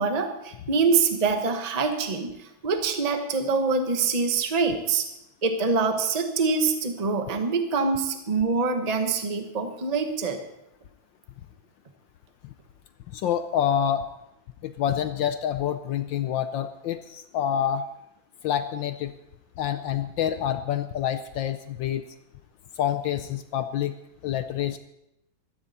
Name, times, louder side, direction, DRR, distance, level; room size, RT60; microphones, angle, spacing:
voice 1, 0.0-5.0 5.4-10.4, right 4 dB, 25° right, 5 dB, 1.1 m, -25 dB
voice 2, 13.1-14.1 14.6-17.8 18.4-19.1 19.6-22.1 22.8-24.0 24.2-24.8, left 9 dB, 75° left, 10 dB, 1.3 m, -27 dB
15.5 x 13.5 x 4.2 m, 0.84 s
omnidirectional pair, 2.2 m